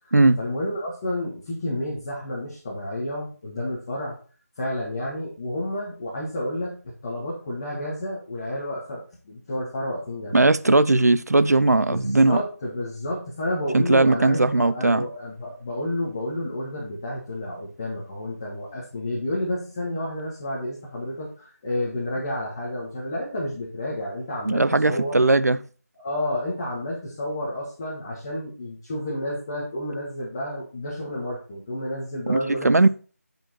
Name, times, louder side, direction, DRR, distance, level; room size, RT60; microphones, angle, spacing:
voice 1, 0.0-4.2 4.5-10.5 11.9-25.1 26.0-32.7, left 1 dB, 20° left, 1.7 m, -30 dB
voice 2, 10.3-12.4 13.7-15.1 24.5-25.6 32.3-32.9, right 2 dB, 80° right, 0.6 m, -18 dB
8.9 x 5.3 x 4.3 m
figure-of-eight pair, 170°, 9 cm